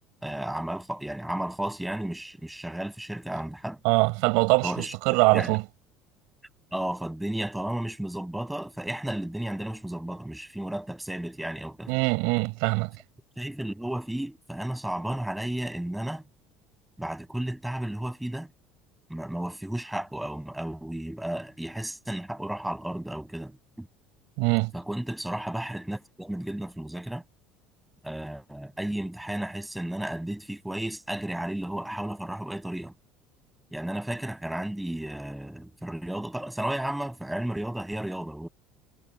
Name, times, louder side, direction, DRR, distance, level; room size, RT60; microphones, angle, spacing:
voice 1, 0.2-3.8 4.6-4.9 5.3-5.6 6.7-11.9 13.4-16.2 17.0-18.5 19.1-23.9 24.7-27.2 28.0-32.9 33.7-38.5, right 1 dB, 5° right, 6.3 m, -33 dB
voice 2, 3.8-4.7 5.0-5.6 11.9-12.9 24.4-24.7, right 29 dB, 75° right, 4.9 m, -22 dB
cardioid pair, 135°, 0 cm